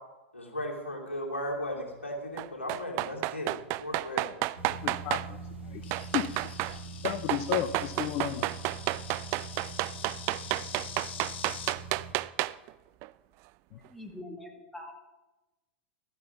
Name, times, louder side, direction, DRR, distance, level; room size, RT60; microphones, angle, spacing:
voice 1, 0.3-4.3, equal, 90° left, 0 dB, 2.7 m, -36 dB
sound 1, 2.4-5.3 5.9-6.8 7.0-12.7 13.0-13.1, right 19 dB, 45° right, 0.4 m, -31 dB
sound 2, 4.6-12.1, right 4 dB, 90° right, 2.0 m, -43 dB
voice 2, 4.8-6.3 7.0-8.5 13.7-13.8, left 13 dB, 45° left, 11 dB, 0.7 m, -33 dB
Insect, 5.8-11.8, left 8 dB, 65° left, 1.2 m, -45 dB
voice 3, 13.9-15.0, left 1 dB, 5° left, 2 dB, 2.4 m, -43 dB
13.0 x 9.6 x 5.9 m, 1.1 s
figure-of-eight pair, 95°, 6 cm